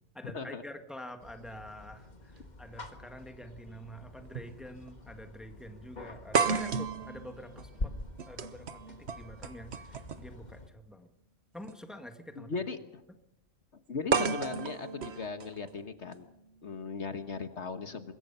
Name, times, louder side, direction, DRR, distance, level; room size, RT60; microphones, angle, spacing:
voice 1, 0.1-8.0 8.3-11.1 11.5-12.5, equal, ahead, 6 dB, 1.7 m, -47 dB
sound 1, 1.2-10.7, left 2 dB, 35° left, 1.8 m, -46 dB
sound 2, 3.1-3.2 4.3-4.5 4.9-5.0 6.3-10.4 11.6-11.7 14.1-16.1, right 5 dB, 55° right, 1.3 m, -33 dB
voice 2, 12.4-13.0 13.9-16.3 16.6-18.1, left 4 dB, 60° left, 9 dB, 1.6 m, -38 dB
25.0 x 21.5 x 5.6 m, 0.82 s
omnidirectional pair, 1.4 m